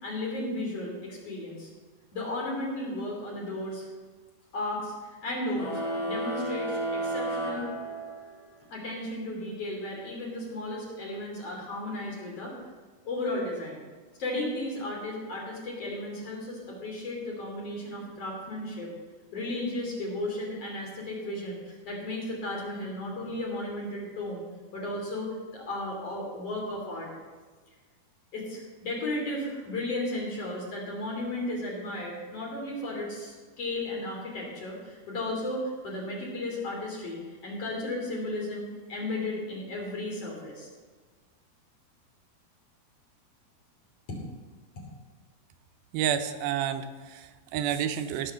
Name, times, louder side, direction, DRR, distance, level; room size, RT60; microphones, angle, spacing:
voice 1, 0.0-1.7 2.1-3.9 4.5-4.9 5.2-7.6 8.7-12.5 13.0-13.8 14.2-18.9 19.3-24.4 24.7-27.1 28.3-40.7, left 1 dB, 40° left, -2 dB, 3.8 m, -34 dB
sound 1, 5.5-8.5, right 1 dB, 65° left, 4.7 m, -32 dB
voice 2, 45.9-48.3, right 9 dB, 80° right, 9 dB, 2.5 m, -30 dB
16.5 x 5.8 x 6.9 m, 1.4 s
omnidirectional pair, 4.3 m